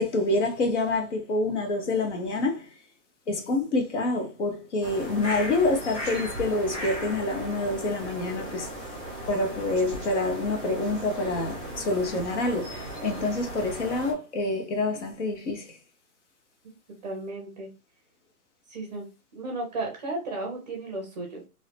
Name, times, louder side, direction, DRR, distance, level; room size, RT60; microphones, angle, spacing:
voice 1, 0.0-2.7 3.3-8.7 9.2-15.8, left 2 dB, 50° left, 1.1 m, -27 dB
sound 1, 4.8-14.1, right 1 dB, 10° left, 1.0 m, -37 dB
voice 2, 17.0-17.7 18.7-19.1 19.3-21.5, right 2 dB, 30° right, 0.6 m, -34 dB
2.7 x 2.7 x 3.3 m
hypercardioid pair, 160°, 47 cm